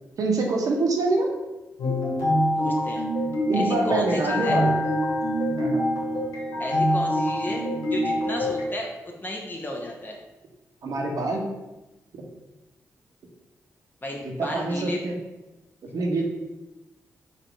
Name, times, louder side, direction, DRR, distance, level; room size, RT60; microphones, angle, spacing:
voice 1, 0.2-1.3 3.5-4.8 5.6-6.1 6.5-6.6 10.8-11.5 14.2-15.2 15.9-16.2, right 2 dB, 70° right, 0 dB, 1.0 m, -25 dB
sound 1, 1.8-8.6, equal, 90° left, 1.1 m, -25 dB
voice 2, 2.5-3.0 3.5-4.6 6.6-10.2 14.0-15.0, left 1 dB, 30° left, -1 dB, 1.0 m, -33 dB
4.1 x 2.7 x 4.6 m, 1.0 s
supercardioid pair, 50°, 6 cm